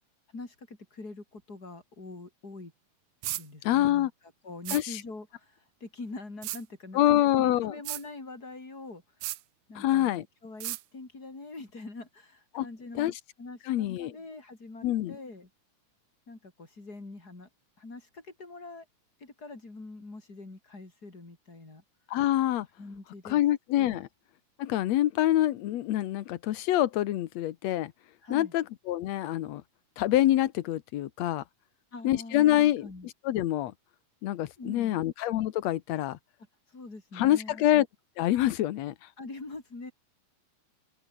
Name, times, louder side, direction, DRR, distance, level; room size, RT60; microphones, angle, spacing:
voice 1, 0.3-2.7 3.3-4.1 4.4-9.0 9.7-15.5 16.3-17.5 17.8-18.9 19.2-21.8 22.8-23.4 23.9-24.0 28.2-28.5 31.9-32.5 32.8-33.1 34.6-35.0 36.7-37.6 39.2-39.9, left 3 dB, 30° left, 5.7 m, -44 dB
sound 1, 3.2-3.4 4.7-4.8 6.4-6.6 7.9-8.0 9.2-9.4 10.6-10.8, right 17 dB, 80° right, 2.3 m, -34 dB
voice 2, 3.6-4.1 4.7-5.0 6.9-7.7 9.8-10.2 12.5-12.7 13.0-13.1 13.7-14.1 14.8-15.2 22.1-22.7 23.3-24.1 24.6-27.9 28.3-29.6 30.0-31.4 32.0-32.9 33.2-33.7 34.2-36.2 37.2-37.9 38.2-38.9, left 13 dB, 65° left, 2.0 m, -26 dB
open air
omnidirectional pair, 3.6 m